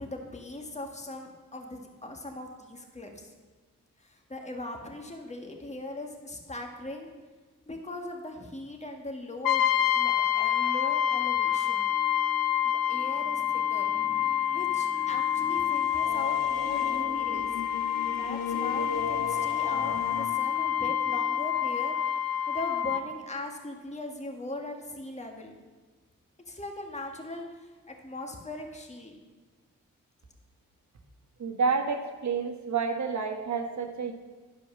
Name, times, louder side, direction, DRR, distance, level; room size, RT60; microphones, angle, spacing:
voice 1, 0.0-3.3 4.0-7.1 7.7-11.9 12.6-13.9 14.5-17.5 18.1-21.9 22.5-25.5 26.5-29.2, left 1 dB, 20° left, 2 dB, 1.6 m, -40 dB
Brass instrument, 9.4-23.1, left 10 dB, 85° left, 0.5 m, -27 dB
sound 1, 11.9-13.2 13.5-19.6 19.9-21.5, equal, 25° right, 1.3 m, -47 dB
sound 2, 13.0-20.3, left 5 dB, 70° left, 1.1 m, -39 dB
voice 2, 31.4-34.1, right 5 dB, 55° right, 4 dB, 1.4 m, -29 dB
11.0 x 4.9 x 6.1 m, 1.3 s
supercardioid pair, 45°, 34 cm